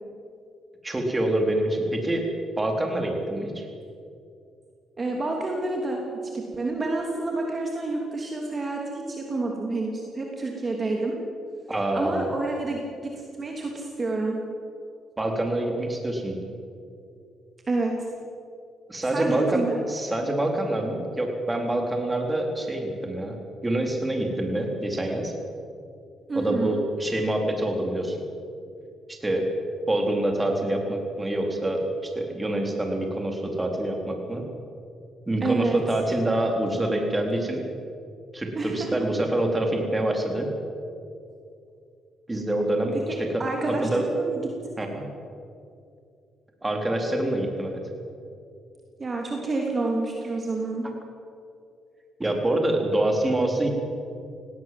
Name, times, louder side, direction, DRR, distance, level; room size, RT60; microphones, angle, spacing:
voice 1, 0.8-2.3 2.6-3.7 11.7-12.3 15.2-16.4 18.9-19.6 19.9-23.4 23.6-25.3 26.3-28.2 29.1-29.5 29.9-34.4 35.3-37.7 38.3-40.5 42.3-42.9 43.2-44.1 44.8-45.0 46.6-47.8 52.2-53.7, right 1 dB, 15° right, 2 dB, 4.0 m, -26 dB
voice 2, 5.0-6.1 6.3-11.1 11.9-13.1 13.4-14.4 17.7-17.9 19.1-19.8 26.3-26.7 35.4-35.8 38.5-38.9 43.1-44.4 44.7-44.8 49.0-50.9, right 3 dB, 35° right, 0 dB, 3.0 m, -28 dB
18.5 x 18.0 x 7.8 m, 2.5 s
cardioid pair, 90°, 0 cm